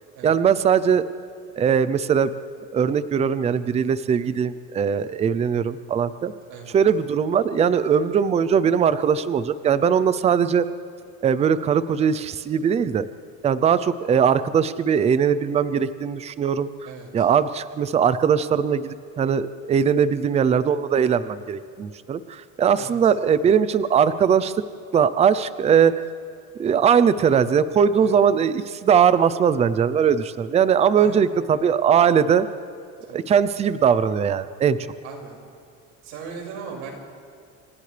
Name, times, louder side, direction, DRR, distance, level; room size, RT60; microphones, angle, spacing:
voice 1, 0.2-1.0 1.6-2.3 2.7-6.3 6.7-10.7 11.2-13.1 13.4-16.7 17.1-24.5 24.9-26.0 26.6-32.5 33.1-34.8, right 7 dB, 20° right, 14 dB, 0.5 m, -20 dB
voice 2, 31.0-31.4 33.1-33.4 35.0-35.4 36.0-36.9, right 6 dB, 80° right, 0 dB, 5.9 m, -38 dB
29.0 x 26.0 x 3.4 m, 2.4 s
cardioid pair, 165°, 30 cm